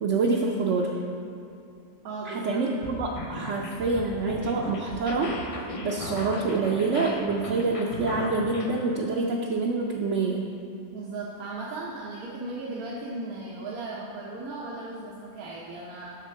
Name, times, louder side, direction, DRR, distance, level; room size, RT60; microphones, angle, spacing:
voice 1, 0.0-1.0 2.3-5.3 5.8-10.5, right 3 dB, 65° right, -1 dB, 0.8 m, -26 dB
voice 2, 2.0-2.6 10.9-16.1, right 2 dB, 85° right, -5 dB, 1.3 m, -36 dB
sound 1, 2.7-8.7, left 2 dB, 65° left, 0.3 m, -36 dB
6.5 x 4.4 x 6.4 m, 2.6 s
omnidirectional pair, 1.5 m